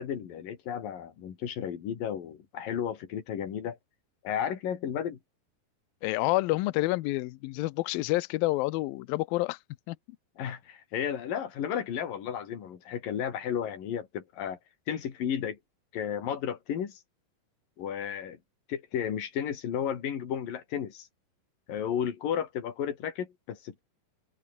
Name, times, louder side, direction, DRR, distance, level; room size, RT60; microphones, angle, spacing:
voice 1, 0.0-3.8 4.2-5.2 10.4-14.6 14.9-15.6 15.9-17.0 17.8-18.4 18.7-21.1 21.7-23.8, left 8 dB, 55° left, 4.1 m, -33 dB
voice 2, 6.0-9.6 9.9-10.0, left 20 dB, 90° left, 2.1 m, -28 dB
open air
omnidirectional pair, 5.1 m